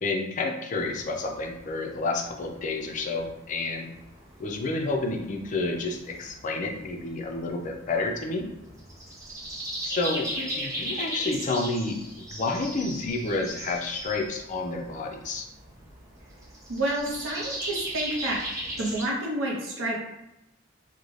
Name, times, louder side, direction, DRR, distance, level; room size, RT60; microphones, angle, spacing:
voice 1, 0.0-3.9 4.4-8.5 9.8-15.5, left 3 dB, 40° left, 2 dB, 0.4 m, -30 dB
sound 1, 0.8-19.0, equal, 15° right, 0.6 m, -38 dB
voice 2, 16.7-18.4 18.8-20.0, right 1 dB, 85° right, -2 dB, 0.5 m, -29 dB
2.5 x 2.0 x 3.0 m, 0.90 s
head